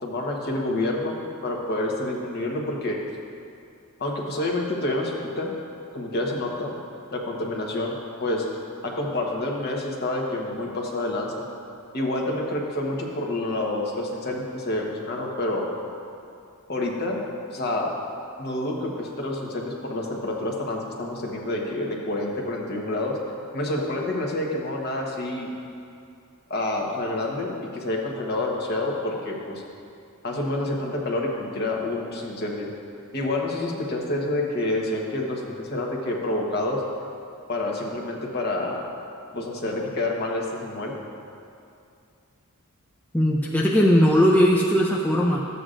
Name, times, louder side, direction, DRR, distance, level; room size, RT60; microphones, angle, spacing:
voice 1, 0.0-3.0 4.0-5.5 5.9-6.7 7.1-8.0 8.2-8.5 8.8-11.4 11.9-15.7 16.7-17.2 17.5-17.9 18.4-23.2 23.5-25.5 26.5-29.6 30.2-32.7 33.1-36.8 37.5-38.8 39.3-40.9, left 2 dB, 45° left, -1 dB, 1.1 m, -28 dB
voice 2, 43.1-45.4, equal, 5° left, -2 dB, 0.4 m, -19 dB
12.5 x 8.0 x 2.5 m, 2.5 s
head